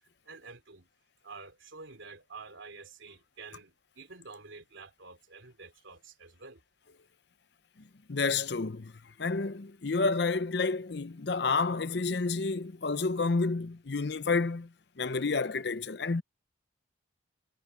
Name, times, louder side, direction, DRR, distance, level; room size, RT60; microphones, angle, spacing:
voice 1, 0.2-0.9 1.2-6.6, right 4 dB, 80° right, 3.3 m, -49 dB
voice 2, 8.1-8.9 9.2-14.7 15.0-16.2, left 4 dB, 60° left, 0.7 m, -30 dB
head